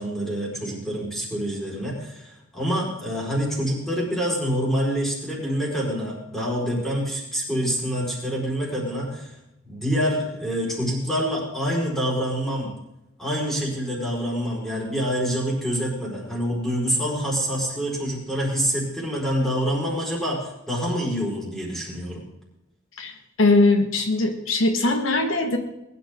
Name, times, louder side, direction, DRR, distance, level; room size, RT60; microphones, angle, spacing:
voice 1, 0.0-9.4 9.6-12.7 13.2-22.2, equal, ahead, -4 dB, 4.7 m, -26 dB
voice 2, 23.4-25.6, left 2 dB, 85° left, 5 dB, 1.6 m, -20 dB
20.5 x 11.5 x 3.8 m, 0.91 s
head